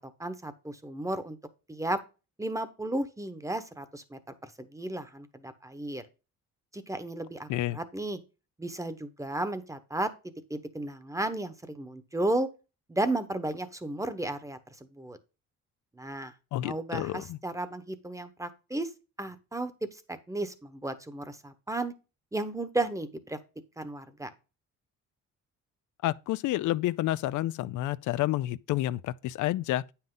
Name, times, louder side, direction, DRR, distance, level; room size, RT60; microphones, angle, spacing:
voice 1, 0.2-1.4 1.7-2.0 2.4-6.0 6.7-8.2 8.6-10.1 10.5-12.5 12.9-14.6 14.9-15.2 16.0-16.3 16.6-18.9 19.2-19.7 20.1-21.9 22.3-23.4 23.8-24.3, right 1 dB, 10° right, 1.1 m, -34 dB
voice 2, 16.5-17.4 26.0-29.8, left 15 dB, 80° left, 0.5 m, -29 dB
9.0 x 5.7 x 3.8 m
cardioid pair, 90°, 30 cm